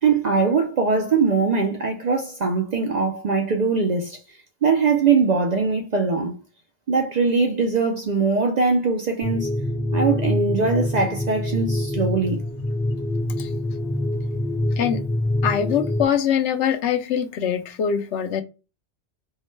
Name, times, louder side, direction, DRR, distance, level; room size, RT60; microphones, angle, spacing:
voice 1, 0.0-4.2 4.6-6.4 6.9-9.6 9.9-12.4, right 4 dB, 55° right, 0.4 m, -21 dB
sound 1, 9.2-16.0, left 1 dB, 50° left, 1.2 m, -25 dB
voice 2, 15.4-18.4, left 8 dB, 85° left, 0.9 m, -23 dB
3.7 x 2.1 x 3.1 m
omnidirectional pair, 1.2 m